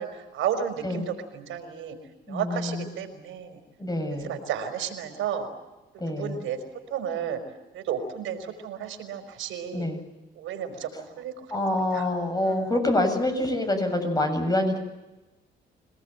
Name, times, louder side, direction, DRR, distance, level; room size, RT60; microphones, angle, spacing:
voice 1, 0.0-2.0 2.3-3.6 4.2-5.5 6.1-6.6 6.9-7.4 7.7-9.9 10.4-10.9 11.2-11.3 11.9-12.1 12.4-12.7, right 8 dB, 85° right, 6 dB, 5.2 m, -32 dB
voice 2, 2.3-2.9 3.8-4.3 6.0-6.4 9.7-10.0 11.5-14.8, left 1 dB, 20° left, 5 dB, 7.7 m, -26 dB
27.5 x 19.5 x 9.2 m, 1.0 s
cardioid pair, 90°, 20 cm